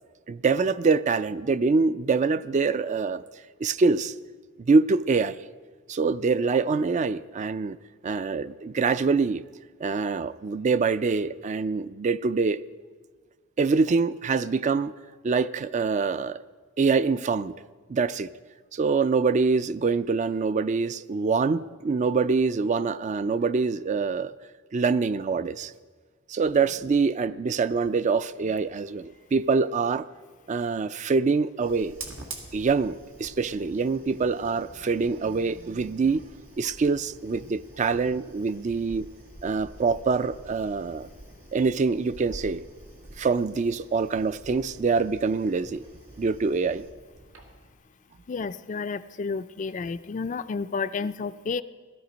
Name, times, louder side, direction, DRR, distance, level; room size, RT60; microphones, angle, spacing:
voice 1, 0.3-3.2 3.6-4.1 4.6-5.4 5.9-7.8 8.0-9.4 9.8-12.6 13.6-14.9 15.2-16.4 16.8-17.5 17.9-18.3 18.7-24.3 24.7-25.7 26.3-30.1 30.5-32.0 32.5-36.2 36.6-39.1 39.4-41.1 41.5-42.6 43.2-45.8 46.2-46.8, right 4 dB, 35° right, 15 dB, 0.4 m, -25 dB
Fire, 31.6-47.7, right 2 dB, 90° right, 2.1 m, -47 dB
voice 2, 48.3-51.6, left 4 dB, 40° left, 14 dB, 0.4 m, -31 dB
17.5 x 13.0 x 5.1 m, 1.5 s
head